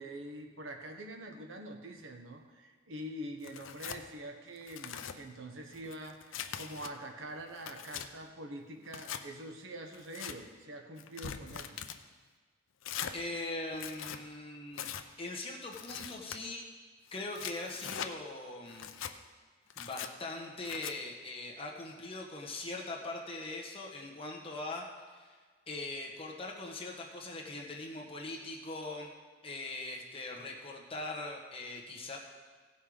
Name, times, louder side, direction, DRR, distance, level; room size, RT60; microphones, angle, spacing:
voice 1, 0.0-11.8, right 1 dB, 75° right, 4 dB, 1.1 m, -45 dB
Tearing, 3.4-4.0 4.6-5.2 5.7-6.9 7.4-8.1 8.8-9.2 9.9-10.4 11.0-12.0 12.8-13.2 13.7-14.2 14.7-15.0 15.7-16.4 17.1-18.1 18.7-19.1 19.7-20.1 20.6-20.9, left 8 dB, 80° left, 0.6 m, -42 dB
voice 2, 13.1-14.9 15.2-16.7 17.1-18.9 19.8-25.4 25.7-29.1 29.4-32.2, left 2 dB, 30° left, -1 dB, 1.3 m, -41 dB
16.0 x 5.6 x 5.0 m, 1.5 s
head